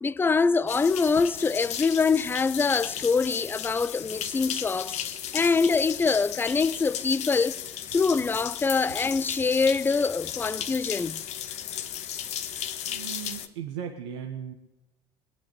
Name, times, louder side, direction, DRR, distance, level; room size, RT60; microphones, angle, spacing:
voice 1, 0.0-5.0 5.3-7.6 7.9-11.2, left 4 dB, 15° left, 0.5 m, -24 dB
sound 1, 0.7-13.5, left 10 dB, 55° left, 1.3 m, -35 dB
voice 2, 12.4-14.5, right 8 dB, 80° right, 1.4 m, -38 dB
20.5 x 8.6 x 7.8 m
hypercardioid pair, 75°, 14 cm